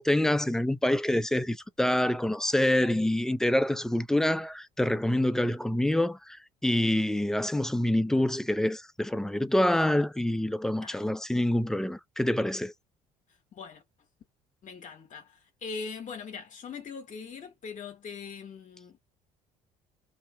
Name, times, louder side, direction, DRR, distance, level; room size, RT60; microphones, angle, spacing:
voice 1, 0.0-6.4 6.6-12.7, left 1 dB, 5° left, 0.4 m, -26 dB
voice 2, 13.5-13.8 14.6-19.0, left 5 dB, 45° left, 1.0 m, -41 dB
3.1 x 2.7 x 3.4 m
hypercardioid pair, 60°, 18 cm